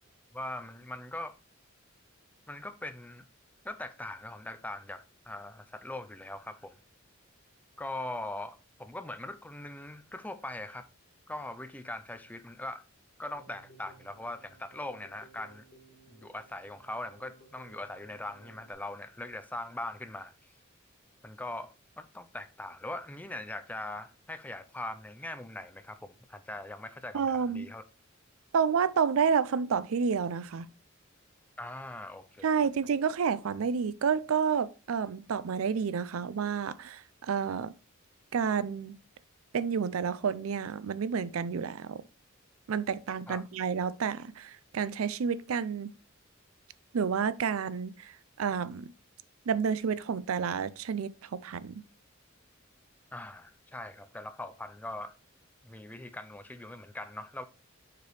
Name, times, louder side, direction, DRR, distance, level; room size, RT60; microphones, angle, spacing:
voice 1, 0.3-1.3 2.5-3.3 3.6-6.8 7.8-10.9 11.3-12.8 13.2-15.7 16.1-20.3 21.2-27.8 31.6-32.5 43.3-43.4 53.1-55.1 55.6-57.4, left 1 dB, 10° left, 0.4 m, -41 dB
Keyboard (musical), 13.3-18.7, right 2 dB, 50° left, 2.4 m, -59 dB
voice 2, 27.1-27.7 28.5-30.7 32.4-37.7 38.3-39.0 39.5-42.0 42.7-45.9 46.9-48.9 49.5-51.7, right 6 dB, 85° right, 0.4 m, -30 dB
6.7 x 4.9 x 3.2 m
head